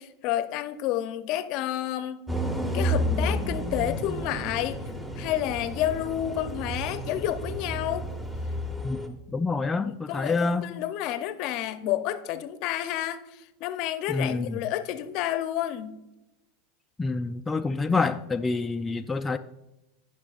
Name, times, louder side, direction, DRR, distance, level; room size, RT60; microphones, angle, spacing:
voice 1, 0.0-2.2 2.7-4.8 5.2-8.1 9.8-16.0, left 12 dB, 55° left, 0.6 m, -30 dB
sound 1, 2.3-9.1, equal, 5° right, 1.1 m, -31 dB
voice 2, 8.8-10.7 14.1-14.6 17.0-19.4, left 3 dB, 15° left, 0.3 m, -27 dB
17.0 x 5.9 x 2.4 m
hypercardioid pair, 110°, 0 cm